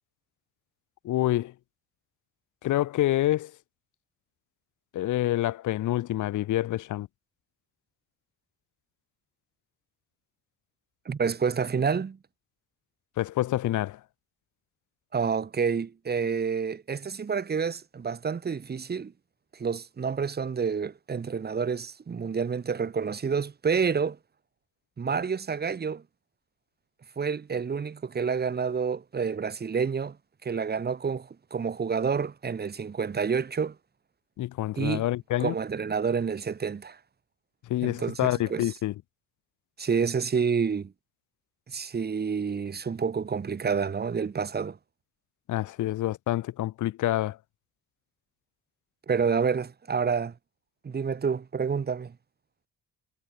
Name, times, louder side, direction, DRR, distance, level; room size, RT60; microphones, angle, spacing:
voice 1, 1.0-1.5 2.6-3.5 4.9-7.1 13.2-14.0 34.4-35.5 37.7-38.9 45.5-47.4, left 14 dB, 80° left, 1.4 m, -27 dB
voice 2, 11.0-12.2 15.1-19.1 19.5-24.2 25.0-26.0 27.2-30.2 30.4-33.7 34.8-35.1 35.4-37.0 37.8-38.7 39.8-40.9 41.7-44.8 49.1-50.3 50.8-52.1, right 6 dB, 30° right, 1.4 m, -28 dB
cardioid pair, 90°, 30 cm